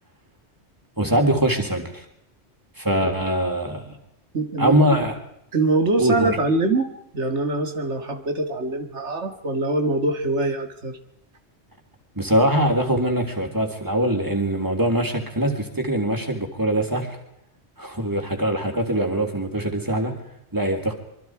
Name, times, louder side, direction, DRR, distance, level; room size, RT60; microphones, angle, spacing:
voice 1, 1.0-2.0 2.8-4.0 4.6-5.1 6.0-6.4 12.1-17.2 17.8-20.1 20.5-20.9, right 1 dB, 15° right, 4 dB, 3.4 m, -22 dB
voice 2, 4.3-5.0 5.5-6.9 7.1-11.0, right 2 dB, 85° right, 6 dB, 2.2 m, -23 dB
25.5 x 24.5 x 4.8 m, 0.79 s
omnidirectional pair, 1.1 m